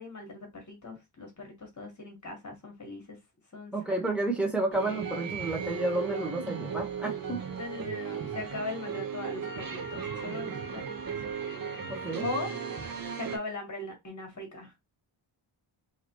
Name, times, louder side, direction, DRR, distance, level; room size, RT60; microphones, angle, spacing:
voice 1, 0.0-3.2 3.5-3.9 7.5-11.0 12.2-12.5 13.1-14.7, left 2 dB, 35° left, 1.6 m, -39 dB
voice 2, 3.7-7.4 11.9-12.3, right 2 dB, ahead, 1.2 m, -31 dB
sound 1, 4.7-13.4, right 6 dB, 45° right, 0.8 m, -36 dB
3.9 x 3.1 x 3.1 m
wide cardioid pair, 150°, 49 cm